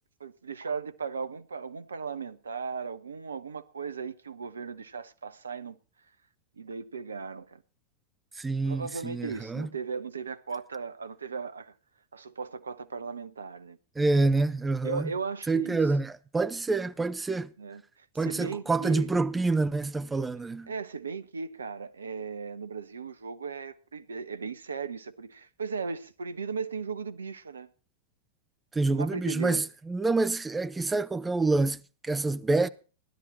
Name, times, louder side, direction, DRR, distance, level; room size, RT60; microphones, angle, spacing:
voice 1, 0.2-5.8 6.6-7.6 8.6-11.7 12.1-13.8 14.8-15.9 17.6-19.1 20.7-27.7 28.9-29.6, right 5 dB, 70° right, 0.9 m, -37 dB
voice 2, 8.4-9.7 14.0-15.1 15.5-17.5 18.2-20.7 28.7-32.7, right 3 dB, 10° right, 0.7 m, -27 dB
16.5 x 11.5 x 4.3 m
figure-of-eight pair, 90°, 0 cm